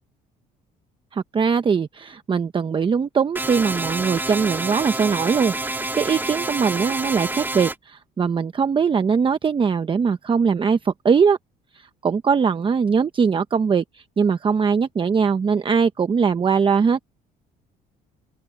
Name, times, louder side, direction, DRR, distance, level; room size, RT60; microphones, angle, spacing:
voice 1, 1.1-11.4 11.7-17.0, right 6 dB, 30° right, 0.9 m, -21 dB
sound 1, 3.4-7.8, right 2 dB, 10° right, 1.8 m, -28 dB
open air
cardioid pair, 110°, 17 cm